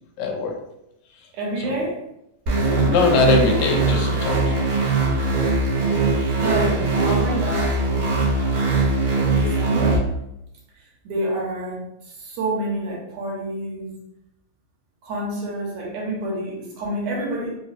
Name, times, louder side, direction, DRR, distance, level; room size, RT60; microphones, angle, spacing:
voice 1, 0.2-0.6 1.6-1.8 2.6-4.5 6.7-6.9, left 4 dB, 80° left, 2 dB, 1.8 m, -22 dB
voice 2, 1.3-2.0 2.5-3.0 4.5-4.8 5.6-8.1 9.4-10.1 10.7-13.9 15.0-17.6, right 1 dB, 70° right, -3 dB, 2.2 m, -28 dB
sound 1, 2.5-10.0, right 3 dB, 90° right, 2.4 m, -21 dB
4.9 x 2.2 x 2.4 m, 0.84 s
omnidirectional pair, 3.3 m